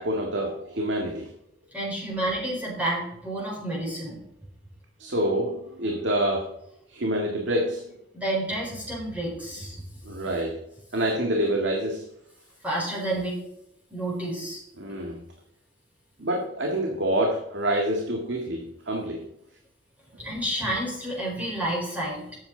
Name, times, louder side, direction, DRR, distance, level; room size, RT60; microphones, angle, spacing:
voice 1, 0.0-1.3 5.0-6.5 6.9-7.9 10.0-10.6 10.9-12.1 14.8-15.3 16.2-19.3, right 1 dB, 85° right, 0 dB, 1.9 m, -27 dB
voice 2, 1.7-4.2 8.1-9.8 12.6-13.4 13.9-14.6 20.2-22.3, right 1 dB, 10° right, -5 dB, 4.2 m, -30 dB
12.5 x 8.9 x 3.9 m, 0.78 s
head